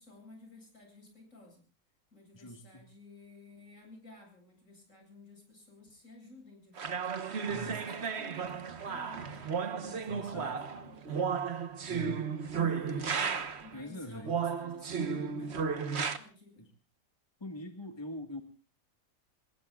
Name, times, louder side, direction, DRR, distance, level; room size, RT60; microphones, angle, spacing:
voice 1, 0.0-1.6 2.1-7.0 7.4-11.4 12.5-15.6 16.1-16.7, left 2 dB, 60° left, 4 dB, 8.6 m, -54 dB
voice 2, 2.3-2.8 7.5-7.8 10.1-10.5 11.9-12.3 13.7-14.3 16.6-16.7 17.4-18.4, left 1 dB, 15° left, 4 dB, 1.9 m, -43 dB
sound 1, 6.8-13.7 14.2-16.2, right 6 dB, 50° right, 1.4 m, -34 dB
27.5 x 21.5 x 2.4 m, 0.35 s
omnidirectional pair, 1.5 m